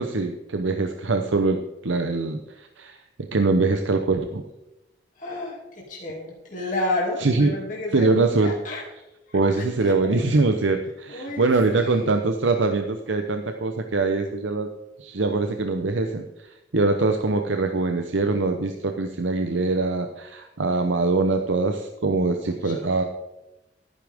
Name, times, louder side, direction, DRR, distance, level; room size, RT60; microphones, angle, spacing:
voice 1, 0.0-3.0 3.3-4.4 7.2-7.5 7.9-8.5 9.3-14.7 15.0-23.0, right 3 dB, 85° right, 5 dB, 0.8 m, -23 dB
voice 2, 5.2-5.6 5.9-8.8 9.8-9.9 11.1-12.1 22.4-22.7, left 2 dB, 45° left, -4 dB, 2.6 m, -31 dB
14.0 x 10.0 x 3.6 m, 0.94 s
head